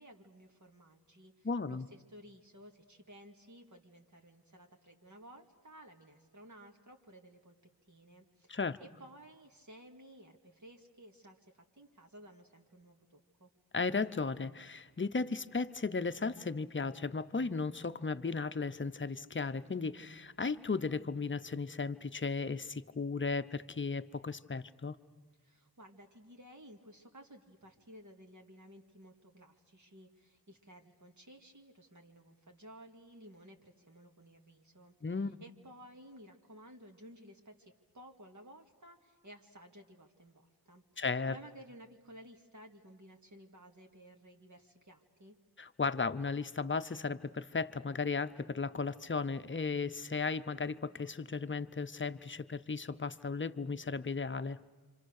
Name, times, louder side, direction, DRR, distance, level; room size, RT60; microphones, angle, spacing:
voice 1, 0.0-7.6 7.9-13.5 25.4-34.9 35.4-45.4, equal, 50° right, 2 dB, 2.3 m, -56 dB
voice 2, 1.4-1.9 8.5-8.8 13.7-25.0 35.0-35.4 41.0-41.3 45.6-54.6, left 4 dB, 30° left, 11 dB, 0.7 m, -35 dB
27.0 x 26.0 x 6.6 m, 1.4 s
wide cardioid pair, 75°, 37 cm